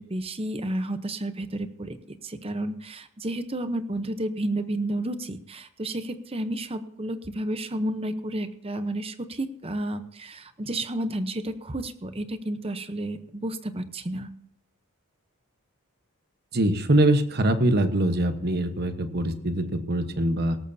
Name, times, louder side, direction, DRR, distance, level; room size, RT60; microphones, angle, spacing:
voice 1, 0.0-14.3, right 1 dB, 25° right, 10 dB, 0.8 m, -31 dB
voice 2, 16.5-20.6, right 1 dB, 45° right, 9 dB, 1.2 m, -23 dB
17.5 x 13.5 x 2.8 m, 0.71 s
head